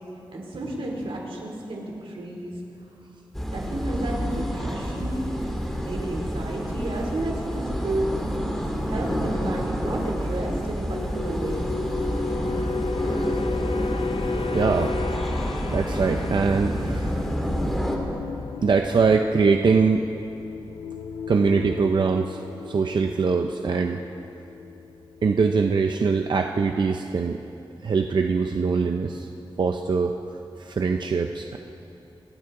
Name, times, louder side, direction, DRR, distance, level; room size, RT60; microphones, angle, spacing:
voice 1, 0.3-2.6 3.5-5.3 5.8-8.1 8.8-11.6, right 2 dB, 90° right, -1 dB, 2.9 m, -32 dB
sound 1, 3.3-18.0, equal, 5° left, 1.9 m, -28 dB
sound 2, 10.9-25.5 25.8-26.1, left 4 dB, 85° left, 0.6 m, -34 dB
voice 2, 14.5-14.9 15.7-17.1 18.6-20.0 21.3-22.4 22.7-24.0 25.2-27.4 27.8-29.3 29.6-31.6, right 5 dB, 55° right, 4 dB, 0.6 m, -22 dB
26.0 x 13.5 x 3.8 m, 2.9 s
wide cardioid pair, 130°, 9 cm